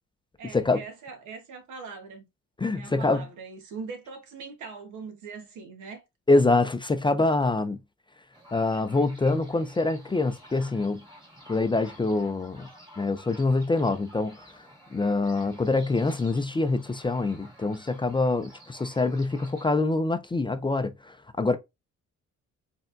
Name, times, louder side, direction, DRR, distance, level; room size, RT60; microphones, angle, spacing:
voice 1, 0.4-2.3 2.7-6.0, right 5 dB, 75° right, 1.2 m, -41 dB
voice 2, 2.6-3.2 6.3-7.8 8.5-11.0 11.5-12.7 13.0-14.4 14.9-21.6, left 3 dB, 15° left, 0.4 m, -25 dB
sound 1, 8.3-19.7, equal, 15° right, 2.0 m, -51 dB
4.2 x 3.5 x 2.5 m
cardioid pair, 90°, 30 cm